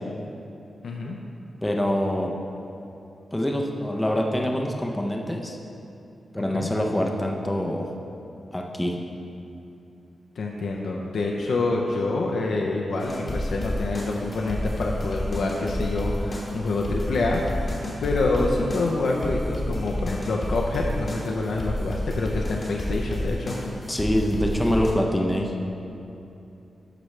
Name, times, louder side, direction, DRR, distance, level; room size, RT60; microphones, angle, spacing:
voice 1, 0.8-1.2 6.5-6.7 10.4-17.4 18.0-23.6, left 2 dB, 70° left, -1 dB, 0.6 m, -26 dB
voice 2, 1.6-2.4 3.3-5.6 6.3-7.8 8.5-9.0 23.9-25.6, equal, 10° left, 0 dB, 0.5 m, -25 dB
sound 1, 13.0-24.9, left 1 dB, 30° left, 1.0 m, -30 dB
11.5 x 6.0 x 3.2 m, 2.8 s
wide cardioid pair, 170°, 0 cm